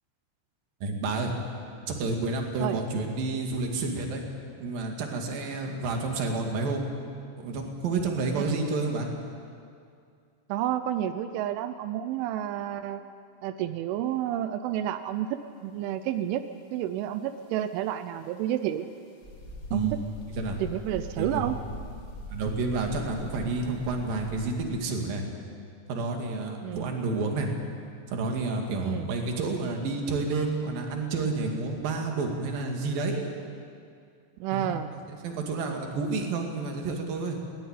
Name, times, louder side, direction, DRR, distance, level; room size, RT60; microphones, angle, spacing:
voice 1, 0.8-1.3 1.9-4.3 4.6-6.8 7.4-9.1 19.7-20.6 21.2-21.4 22.3-25.2 25.9-27.5 28.1-33.4 34.5-34.7 35.1-37.4, right 3 dB, 55° right, 2 dB, 3.7 m, -30 dB
voice 2, 10.5-13.0 13.4-16.4 16.7-18.9 19.7-19.9 20.6-21.6 26.6-26.9 28.8-29.1 34.4-34.9, right 11 dB, 85° right, 10 dB, 3.2 m, -30 dB
sound 1, 19.2-24.7, equal, 40° left, 1.2 m, -41 dB
20.0 x 19.5 x 9.1 m, 2.3 s
omnidirectional pair, 5.4 m